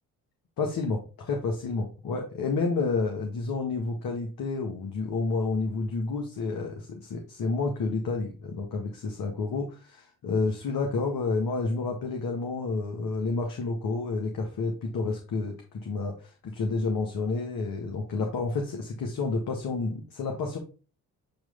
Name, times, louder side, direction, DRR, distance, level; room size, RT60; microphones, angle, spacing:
voice 1, 0.6-20.6, left 3 dB, 65° left, 2 dB, 1.6 m, -30 dB
8.8 x 3.2 x 3.8 m, 0.35 s
supercardioid pair, 60°, 36 cm